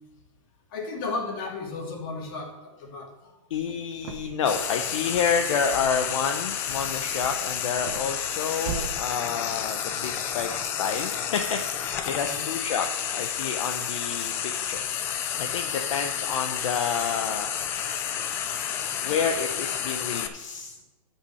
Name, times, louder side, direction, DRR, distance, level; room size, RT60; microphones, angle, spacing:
voice 1, 0.7-3.4 12.1-12.5 18.3-18.6, left 3 dB, 40° left, -1 dB, 2.6 m, -35 dB
voice 2, 3.5-14.8 15.3-17.5 19.0-20.7, left 6 dB, 65° left, 4 dB, 0.9 m, -29 dB
sound 1, 3.5-4.6 4.9-6.4 6.7-8.9, right 8 dB, 40° right, 1.0 m, -39 dB
Frying (food), 4.5-20.3, left 9 dB, 15° left, 0.3 m, -30 dB
10.0 x 5.7 x 6.3 m, 1.1 s
hypercardioid pair, 170°, 18 cm